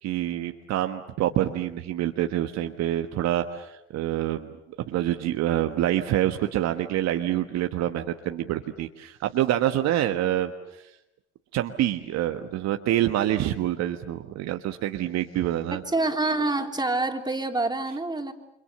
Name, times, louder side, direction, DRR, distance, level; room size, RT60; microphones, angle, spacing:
voice 1, 0.0-4.5 4.8-10.5 10.8-10.9 11.5-15.8, right 12 dB, 60° right, 6 dB, 1.5 m, -26 dB
voice 2, 15.7-18.3, right 2 dB, 15° right, 4 dB, 3.6 m, -26 dB
29.5 x 26.5 x 6.9 m, 0.84 s
hypercardioid pair, 55°, 31 cm